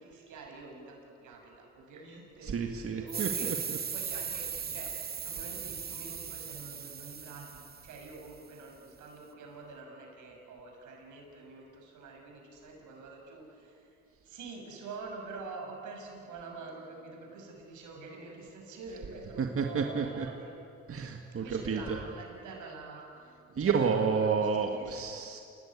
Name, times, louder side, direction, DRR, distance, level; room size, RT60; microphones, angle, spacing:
voice 1, 0.0-3.7 3.9-4.9 5.2-13.9 14.2-20.5 21.3-23.1 23.5-25.1, right 3 dB, 80° right, 1 dB, 6.6 m, -46 dB
voice 2, 2.4-3.6 19.4-20.3 20.9-21.8 23.6-25.4, right 6 dB, 45° right, 3 dB, 1.8 m, -30 dB
sound 1, 3.1-8.4, right 7 dB, 30° right, 0.8 m, -38 dB
28.5 x 18.0 x 9.8 m, 2.6 s
cardioid pair, 90°, 30 cm